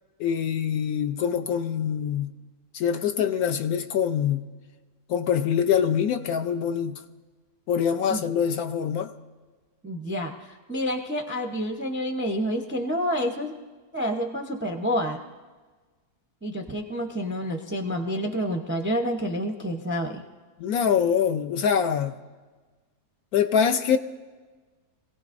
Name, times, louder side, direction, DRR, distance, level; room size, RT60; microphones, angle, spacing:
voice 1, 0.2-2.3 2.7-4.4 5.1-7.0 7.7-9.1 20.6-22.2 23.3-24.0, left 8 dB, 70° left, 1.1 m, -24 dB
voice 2, 9.8-13.5 13.9-15.2 16.4-20.2, equal, 15° right, 0.4 m, -28 dB
25.5 x 17.0 x 2.6 m
omnidirectional pair, 1.8 m